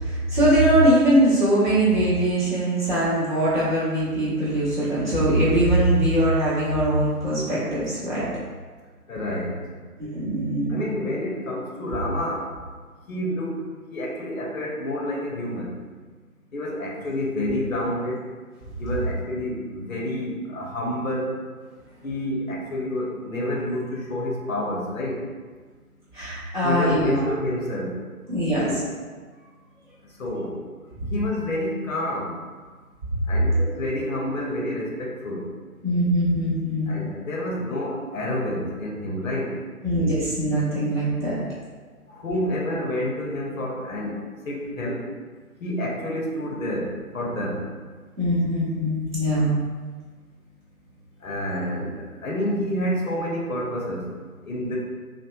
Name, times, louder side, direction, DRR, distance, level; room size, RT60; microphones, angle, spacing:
voice 1, 0.0-8.3 10.0-10.8 26.1-27.3 28.3-28.7 35.8-36.9 39.8-41.4 48.2-49.5, right 1 dB, 30° right, -11 dB, 0.9 m, -21 dB
voice 2, 9.1-9.6 10.7-12.5 13.1-13.5 13.9-15.7 16.5-18.3 18.8-21.4 22.0-25.3 26.6-28.0 28.6-28.8 30.2-30.7 31.1-32.3 33.3-35.5 36.9-39.6 42.1-45.1 45.6-47.6 51.2-54.1 54.4-54.8, left 1 dB, 60° left, -1 dB, 0.6 m, -28 dB
2.8 x 2.0 x 2.3 m, 1.5 s
figure-of-eight pair, 150°, 46 cm